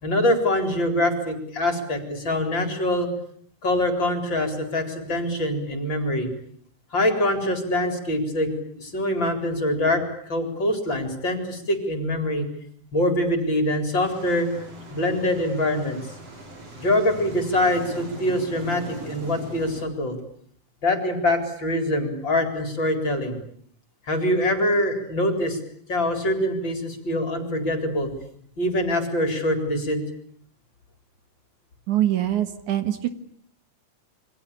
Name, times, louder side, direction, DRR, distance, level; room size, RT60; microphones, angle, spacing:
voice 1, 0.0-3.1 3.6-6.3 6.9-12.5 12.9-14.5 14.9-16.0 16.8-20.2 20.8-23.4 24.1-25.6 25.9-28.1 28.6-30.0, left 1 dB, 35° left, 6 dB, 4.7 m, -24 dB
sound 1, 14.0-19.9, right 2 dB, 45° right, 5.9 m, -40 dB
voice 2, 31.9-33.1, right 12 dB, 65° right, 9 dB, 2.9 m, -23 dB
28.5 x 24.5 x 8.6 m, 0.62 s
omnidirectional pair, 3.8 m